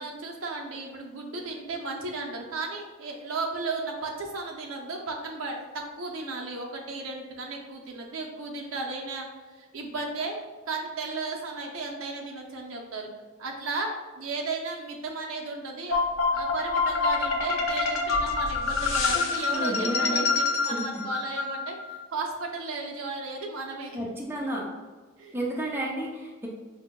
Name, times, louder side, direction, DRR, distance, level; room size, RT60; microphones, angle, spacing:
voice 1, 0.0-13.1 13.4-16.0 16.3-24.0 25.2-25.4, right 3 dB, 90° right, 1 dB, 0.7 m, -35 dB
sound 1, 15.9-22.0, left 4 dB, 75° left, 0.5 m, -26 dB
voice 2, 19.5-20.3 20.6-21.0 23.9-24.7 25.3-26.5, right 1 dB, 10° right, -3 dB, 0.5 m, -31 dB
4.9 x 2.7 x 2.2 m, 1.3 s
head